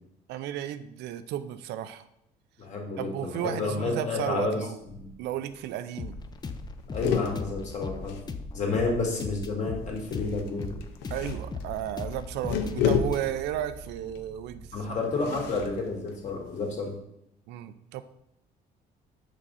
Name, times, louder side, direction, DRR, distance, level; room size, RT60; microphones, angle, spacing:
voice 1, 0.3-2.0 3.0-4.8 5.2-6.2 8.9-9.0 11.1-14.7 17.5-18.0, right 11 dB, 85° right, 12 dB, 0.5 m, -34 dB
voice 2, 2.6-4.6 4.9-5.1 6.9-8.2 8.5-10.7 14.7-17.0, left 3 dB, 45° left, 0 dB, 2.1 m, -30 dB
sound 1, 4.8-5.3 5.6-5.7 5.9-6.2 6.5-8.9 10.0-16.9, left 7 dB, 90° left, 0.8 m, -33 dB
sound 2, 6.0-15.6, left 4 dB, 25° left, 0.5 m, -39 dB
6.2 x 5.5 x 4.0 m, 0.80 s
cardioid pair, 110°, 17 cm